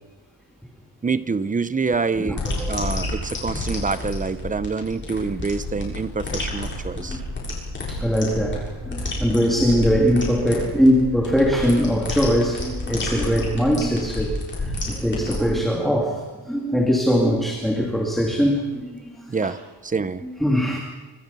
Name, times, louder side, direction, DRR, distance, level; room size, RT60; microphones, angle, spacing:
voice 1, 1.0-7.2 19.3-20.2, right 4 dB, 20° right, 13 dB, 0.8 m, -26 dB
voice 2, 2.2-2.8 7.0-7.2 7.9-14.4 14.6-19.5 20.2-20.8, equal, ahead, 0 dB, 2.5 m, -21 dB
sound 1, 2.4-15.4, left 2 dB, 30° left, 7.0 m, -30 dB
26.5 x 25.0 x 5.6 m, 1.2 s
wide cardioid pair, 170°, 39 cm